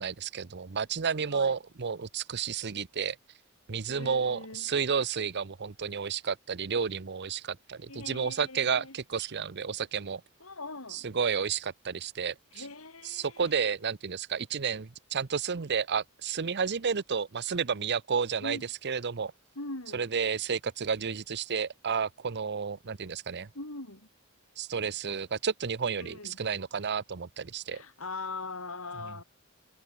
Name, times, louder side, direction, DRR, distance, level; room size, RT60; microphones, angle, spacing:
voice 1, 0.0-3.2 3.7-10.2 10.9-12.6 13.0-18.6 18.8-19.3 19.9-23.5 24.6-27.8, right 6 dB, 55° right, 0.8 m, -31 dB
voice 2, 3.9-4.7 7.9-9.0 10.4-11.1 12.5-13.6 18.4-18.6 19.6-20.1 23.5-24.1 26.0-26.4 27.7-29.2, left 3 dB, 75° left, 5.4 m, -41 dB
head